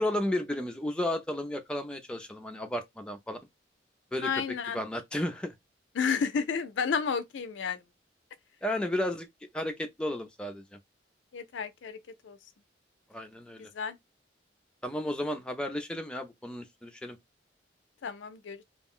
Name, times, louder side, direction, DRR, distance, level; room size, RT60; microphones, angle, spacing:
voice 1, 0.0-3.4 4.1-4.3 4.7-5.5 8.6-9.3 9.5-10.8 13.1-13.7 14.8-17.2, left 1 dB, 5° left, 0.3 m, -33 dB
voice 2, 4.2-4.8 5.9-7.8 11.3-12.4 13.6-14.0 18.0-18.6, left 6 dB, 80° left, 0.4 m, -32 dB
2.3 x 2.0 x 3.6 m
head